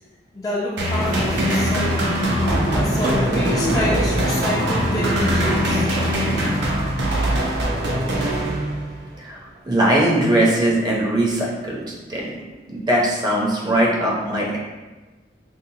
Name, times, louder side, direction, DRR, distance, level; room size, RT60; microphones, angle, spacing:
voice 1, 0.3-2.1 2.7-5.9, left 1 dB, 20° left, -5 dB, 0.5 m, -28 dB
sound 1, 0.8-9.1, equal, 85° right, 0.6 m, -22 dB
sound 2, 0.9-6.5, equal, 65° right, 1.0 m, -25 dB
voice 2, 9.7-11.8 12.1-12.3 12.7-14.6, right 1 dB, 25° right, -4 dB, 0.6 m, -20 dB
5.4 x 2.1 x 2.7 m, 1.2 s
head